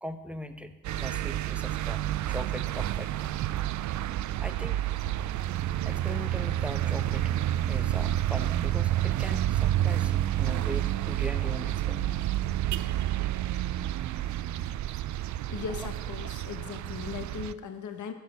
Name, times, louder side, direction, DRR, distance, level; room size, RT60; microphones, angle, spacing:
voice 1, 0.0-3.6 4.4-4.8 5.7-7.3 7.6-12.0, equal, 5° right, 8 dB, 0.9 m, -40 dB
sound 1, 0.8-17.5, right 13 dB, 55° right, 0.5 m, -29 dB
voice 2, 15.5-18.1, left 7 dB, 55° left, 8 dB, 1.2 m, -38 dB
11.0 x 6.4 x 6.7 m, 1.2 s
hypercardioid pair, 55°, 36 cm